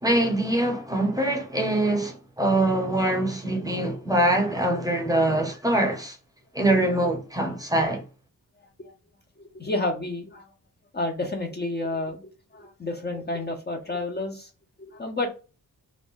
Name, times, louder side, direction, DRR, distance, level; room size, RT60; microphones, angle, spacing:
voice 1, 0.0-6.2 6.5-8.0, right 1 dB, 10° right, 0.7 m, -23 dB
voice 2, 9.5-10.4 10.9-12.2 12.5-14.5 14.8-15.3, left 2 dB, 30° left, 0.5 m, -30 dB
2.5 x 2.1 x 3.5 m
wide cardioid pair, 140°, 34 cm